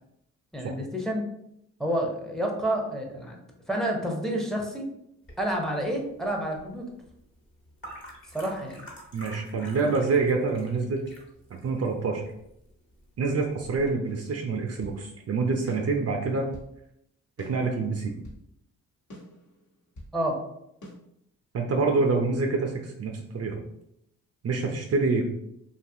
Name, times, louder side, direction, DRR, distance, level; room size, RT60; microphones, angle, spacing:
voice 1, 0.5-1.2 1.8-3.4 3.7-4.9 5.4-6.9 8.3-8.8 20.1-20.4, right 1 dB, ahead, 1 dB, 0.7 m, -29 dB
sound 1, 5.2-13.9, equal, 35° left, 1.2 m, -49 dB
voice 2, 9.1-11.0 11.5-12.2 13.2-16.5 17.5-18.1 21.5-23.6 24.4-25.2, right 4 dB, 45° right, 2 dB, 0.5 m, -26 dB
sound 2, 14.1-15.0 15.7-16.8 17.4-18.5 19.1-20.2 20.8-21.0, equal, 60° left, 1.1 m, -47 dB
2.7 x 2.4 x 2.7 m, 0.78 s
supercardioid pair, 50°, 34 cm